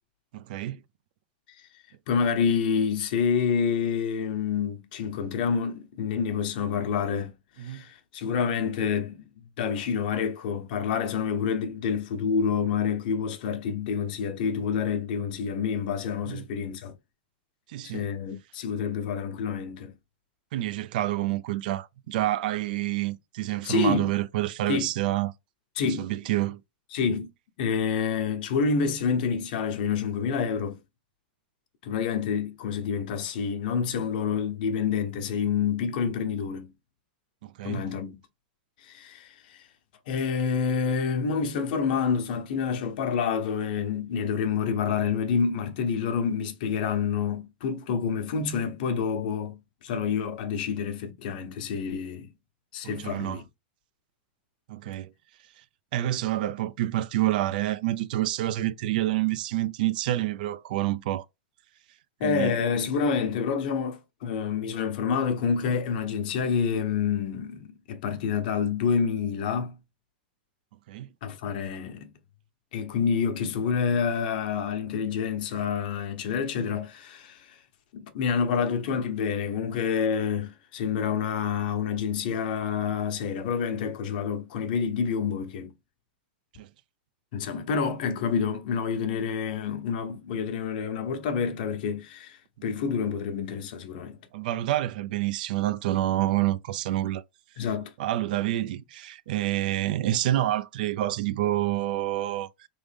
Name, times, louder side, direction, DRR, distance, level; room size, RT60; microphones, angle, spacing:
voice 1, 0.3-0.8 7.6-7.8 16.3-16.5 17.7-18.0 20.5-25.3 26.0-26.6 37.4-37.8 52.8-53.4 54.7-55.1 55.9-61.3 62.2-62.5 70.9-71.1 86.6-86.7 94.3-97.2 98.0-102.5, right 14 dB, 65° right, 0.4 m, -28 dB
voice 2, 2.1-9.2 9.6-16.9 17.8-19.9 23.6-24.1 24.7-24.9 25.8-26.1 26.9-27.3 27.6-30.8 31.8-36.7 37.6-38.2 38.8-39.6 40.1-52.3 52.7-53.4 62.2-69.8 71.2-72.1 72.7-77.6 77.9-85.7 87.3-94.2 97.6-97.9, left 6 dB, 60° left, 1.0 m, -28 dB
3.9 x 3.4 x 3.4 m
supercardioid pair, 140°, 5 cm